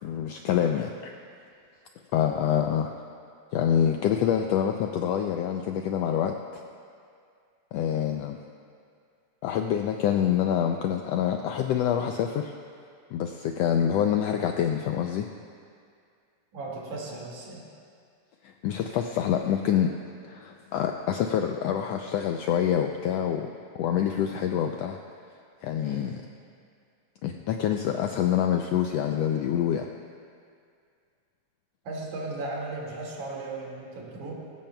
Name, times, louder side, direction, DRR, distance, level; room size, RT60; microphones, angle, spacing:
voice 1, 0.0-1.1 2.1-2.9 3.5-6.6 7.7-8.4 9.4-12.5 13.1-15.3 18.4-19.9 20.2-23.5 23.8-25.0 25.6-26.2 27.2-29.9, left 9 dB, 85° left, 4 dB, 1.4 m, -26 dB
voice 2, 16.5-17.7 25.8-26.3 31.8-34.3, right 2 dB, 75° right, -4 dB, 3.6 m, -37 dB
19.0 x 16.0 x 2.3 m, 2.3 s
omnidirectional pair, 3.4 m